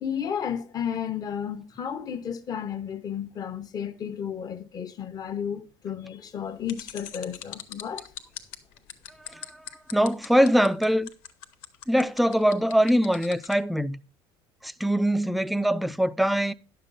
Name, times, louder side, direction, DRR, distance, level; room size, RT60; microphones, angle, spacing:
voice 1, 0.0-8.1, left 8 dB, 35° left, 0.8 m, -33 dB
sound 1, 6.7-13.6, left 11 dB, 85° left, 0.8 m, -41 dB
voice 2, 9.3-9.6 9.9-11.1 11.9-14.0 14.6-16.5, equal, ahead, 0.3 m, -23 dB
9.9 x 6.7 x 4.0 m
cardioid pair, 120°, 11 cm